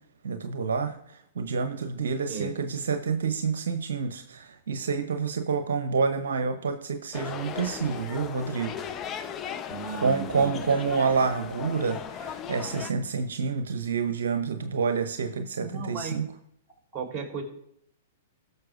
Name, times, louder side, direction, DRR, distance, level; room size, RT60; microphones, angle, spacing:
voice 1, 0.2-8.7 10.0-16.3, right 5 dB, 75° right, 8 dB, 0.7 m, -28 dB
sound 1, 7.1-12.9, left 8 dB, 30° left, 0.6 m, -37 dB
voice 2, 9.7-11.0 15.6-16.2 16.9-17.4, right 5 dB, 20° right, -1 dB, 3.3 m, -36 dB
18.0 x 6.6 x 2.5 m, 0.74 s
hypercardioid pair, 110°, 0 cm